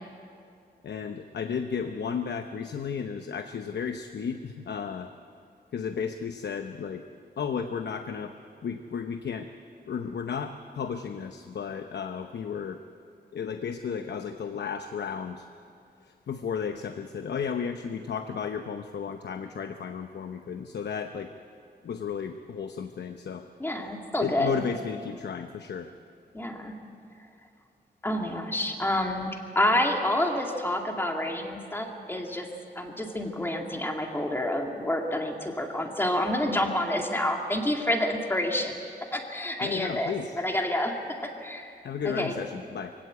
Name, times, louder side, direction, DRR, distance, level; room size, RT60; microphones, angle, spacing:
voice 1, 0.8-5.1 5.7-7.0 7.4-8.3 8.6-9.5 9.9-12.8 13.3-15.5 16.0-21.3 21.8-23.5 24.2-25.9 39.6-40.4 41.8-42.9, left 6 dB, 85° left, 7 dB, 0.9 m, -33 dB
voice 2, 23.6-24.6 26.3-26.7 28.0-29.3 29.6-32.5 32.8-38.8 39.1-41.8 42.0-42.4, left 1 dB, 15° left, 2 dB, 2.1 m, -28 dB
24.0 x 16.5 x 8.3 m, 2.4 s
wide cardioid pair, 160°, 17 cm